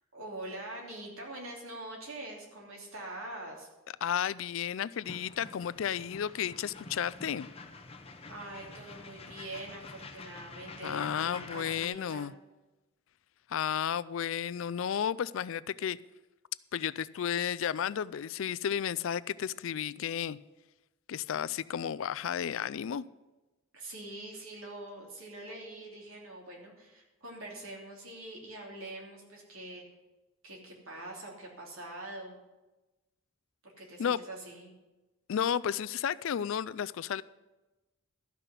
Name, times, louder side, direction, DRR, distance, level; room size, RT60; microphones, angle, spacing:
voice 1, 0.1-3.7 8.3-12.3 23.7-29.8 30.4-32.4 33.6-34.7, right 1 dB, 75° right, -1 dB, 3.0 m, -44 dB
voice 2, 4.0-7.5 10.8-12.3 13.5-16.0 16.7-20.4 21.1-23.0 34.0-34.2 35.3-37.2, left 8 dB, 65° left, 17 dB, 0.3 m, -32 dB
sound 1, 5.0-11.9, left 3 dB, 30° left, 0.9 m, -48 dB
13.0 x 5.8 x 8.2 m, 1.1 s
head